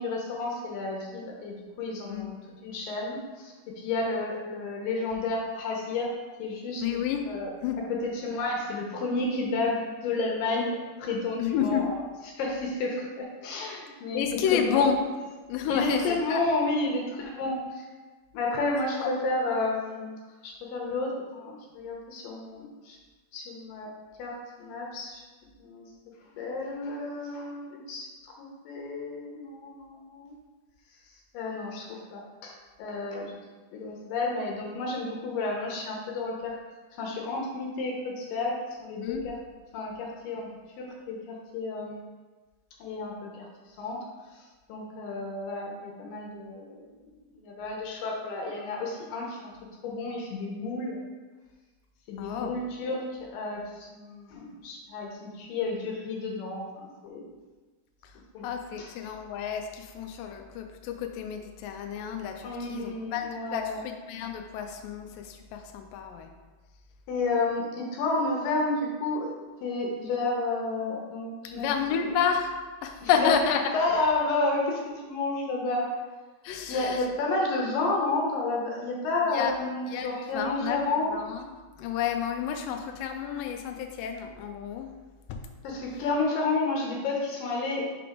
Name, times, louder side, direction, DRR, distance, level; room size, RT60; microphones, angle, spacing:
voice 1, 0.0-6.1 6.4-6.8 7.3-7.5 7.9-12.0 12.3-14.9 15.7-17.9 18.3-20.1 20.4-23.0 23.3-23.9 24.2-25.2 25.6-25.9 26.4-30.3 31.3-32.5 32.8-33.4 33.7-36.6 37.0-39.4 39.7-40.5 40.8-42.1 42.8-43.5 43.8-44.0 44.3-44.4 44.7-46.9 47.3-49.5 49.8-51.0 52.1-57.2 58.3-58.5 58.8-58.9 62.4-63.8 67.1-72.1 73.0-73.3 73.7-75.9 76.7-81.2 85.6-87.8, left 2 dB, 70° left, -1 dB, 2.4 m, -31 dB
voice 2, 6.8-7.2 7.6-7.8 11.4-11.9 14.1-15.0 15.5-16.4 19.0-19.1 39.0-39.2 52.2-52.5 58.4-63.7 64.1-66.3 71.6-72.5 72.8-73.6 76.4-77.0 79.3-79.6 79.9-80.9 81.1-81.4 81.8-84.9 85.3-85.4, left 8 dB, 90° left, 4 dB, 1.9 m, -30 dB
5.8 x 3.4 x 4.9 m, 1.3 s
omnidirectional pair, 4.5 m